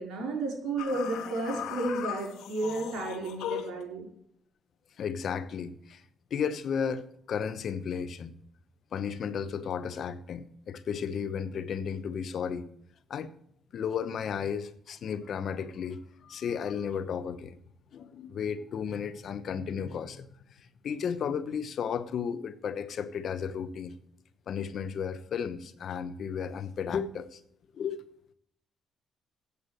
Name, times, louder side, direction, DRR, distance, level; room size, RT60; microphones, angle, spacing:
voice 1, 0.0-4.1, right 2 dB, 85° right, 4.7 m, -32 dB
sound 1, 0.8-3.8, left 10 dB, 85° left, 1.4 m, -38 dB
voice 2, 5.0-6.0 6.3-8.3 8.9-12.7 13.1-13.3 13.7-17.6 17.9-20.3 20.6-23.9 24.5-27.4 27.7-28.0, left 7 dB, 60° left, 1.0 m, -34 dB
8.4 x 8.0 x 9.0 m
cardioid pair, 90°, 0 cm